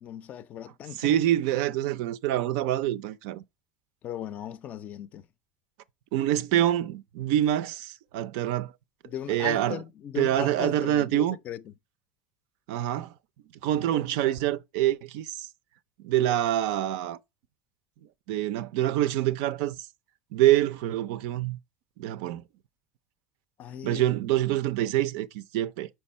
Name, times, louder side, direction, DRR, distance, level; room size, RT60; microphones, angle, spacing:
voice 1, 0.0-1.2 4.0-5.2 9.0-11.7 23.6-24.2, left 10 dB, 40° left, 0.4 m, -38 dB
voice 2, 1.0-3.4 6.1-8.7 9.3-9.8 10.2-11.4 12.7-13.1 13.6-15.5 16.0-17.2 18.3-19.8 20.3-21.6 22.0-22.4 23.8-25.9, right 13 dB, 70° right, 0.4 m, -26 dB
5.3 x 4.6 x 4.1 m
supercardioid pair, 135°, 4 cm